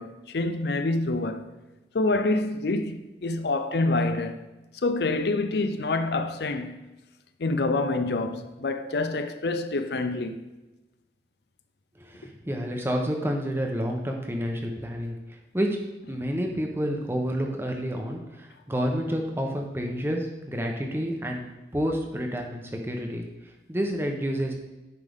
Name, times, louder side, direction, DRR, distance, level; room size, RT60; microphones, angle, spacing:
voice 1, 0.0-1.5 1.9-4.5 4.7-6.8 7.4-10.4, left 2 dB, 70° left, 0.5 m, -27 dB
voice 2, 12.0-15.8 16.1-21.4 21.7-24.5, equal, 15° right, 0.8 m, -29 dB
10.0 x 5.4 x 3.6 m
head